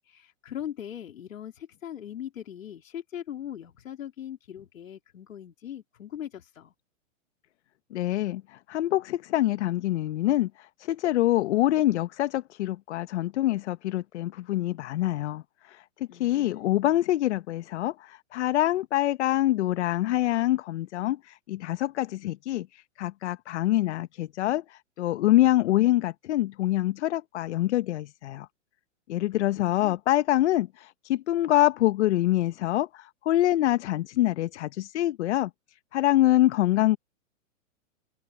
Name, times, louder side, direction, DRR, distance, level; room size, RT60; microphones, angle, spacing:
voice 1, 0.0-6.7 16.1-16.8 29.6-30.0, left 10 dB, 85° left, 3.6 m, -40 dB
voice 2, 7.9-10.5 10.8-15.4 15.7-28.5 29.1-35.5 35.9-37.0, left 14 dB, 60° left, 1.2 m, -25 dB
open air
hypercardioid pair, 145°, 39 cm